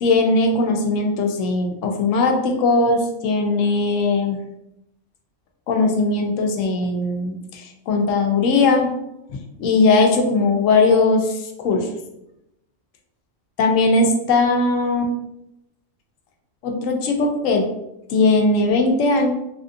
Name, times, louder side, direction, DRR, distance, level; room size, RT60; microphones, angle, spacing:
voice 1, 0.0-4.4 5.7-8.9 9.6-11.9 13.6-15.1 16.6-17.7 18.1-19.3, left 3 dB, 85° left, 3 dB, 0.9 m, -19 dB
3.3 x 2.5 x 2.5 m, 0.86 s
omnidirectional pair, 1.3 m